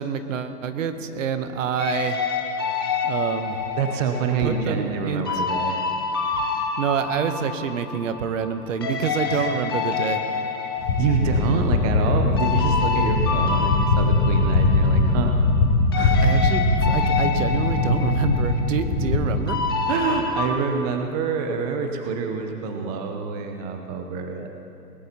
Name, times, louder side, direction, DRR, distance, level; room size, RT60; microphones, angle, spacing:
voice 1, 0.0-2.2 3.0-3.6 4.4-5.4 6.3-6.4 6.8-10.2 10.8-10.9 16.2-19.6, right 7 dB, 50° right, 9 dB, 1.0 m, -27 dB
sound 1, 1.8-8.6 8.8-15.7 15.9-20.5, left 5 dB, 15° left, 0.4 m, -28 dB
voice 2, 3.8-5.8 9.3-9.5 11.0-15.3 15.9-16.4 19.9-24.5, right 5 dB, 25° right, 4 dB, 0.7 m, -27 dB
sound 2, 10.9-19.2, left 2 dB, 55° left, 3.0 m, -21 dB
19.5 x 18.0 x 2.9 m, 2.7 s
hypercardioid pair, 135°, 48 cm